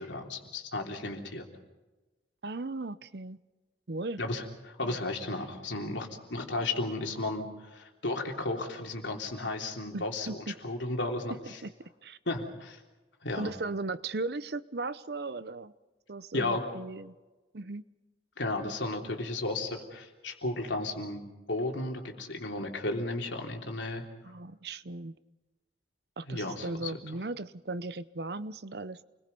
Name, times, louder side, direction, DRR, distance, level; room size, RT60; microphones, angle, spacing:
voice 1, 0.0-1.5 4.2-11.4 12.3-12.8 13.2-13.5 16.3-16.7 18.4-24.0 26.3-26.9, left 2 dB, 90° left, 2 dB, 3.6 m, -34 dB
voice 2, 2.4-3.4 3.9-4.2 4.8-5.0 9.9-10.5 11.6-11.7 12.0-12.2 13.4-15.7 16.1-17.1 17.5-17.8 24.2-25.1 26.2-29.0, right 2 dB, 60° right, 15 dB, 0.8 m, -37 dB
29.0 x 21.5 x 5.4 m, 1.1 s
head